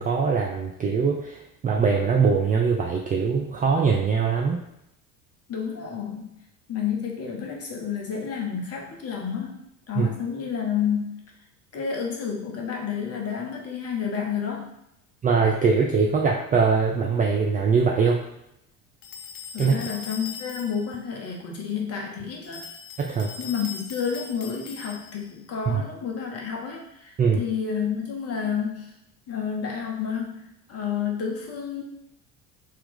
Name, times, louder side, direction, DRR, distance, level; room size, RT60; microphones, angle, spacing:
voice 1, 0.0-1.4 1.6-4.6 10.0-10.1 15.2-18.2 19.6-19.7 23.0-23.3 25.7-25.8 27.2-27.4, right 5 dB, 20° right, -1 dB, 0.4 m, -22 dB
voice 2, 5.5-6.3 6.7-9.6 9.9-11.1 11.7-14.8 19.5-22.6 23.4-28.9 29.3-30.4 30.7-31.8, left 7 dB, 30° left, 0 dB, 1.1 m, -30 dB
sound 1, 19.0-21.0 22.4-25.3, left 5 dB, 65° left, 0.8 m, -40 dB
3.3 x 2.9 x 3.7 m, 0.82 s
figure-of-eight pair, 65°, 46 cm